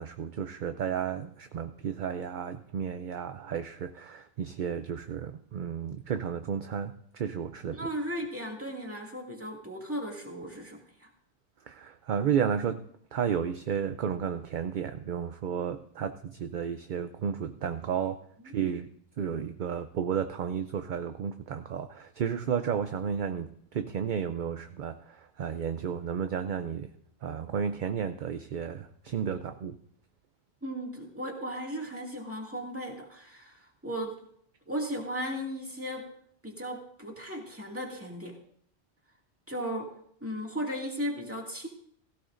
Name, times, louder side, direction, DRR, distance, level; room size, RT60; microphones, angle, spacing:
voice 1, 0.0-7.8 11.7-12.8 13.1-18.2 18.5-18.9 19.2-26.9 27.2-29.8, right 8 dB, 55° right, 9 dB, 0.6 m, -32 dB
voice 2, 7.7-11.1 30.6-34.2 34.7-36.1 36.4-38.4 39.5-39.9 40.2-41.7, equal, 10° right, -1 dB, 2.2 m, -36 dB
16.5 x 15.5 x 2.6 m, 0.65 s
omnidirectional pair, 1.2 m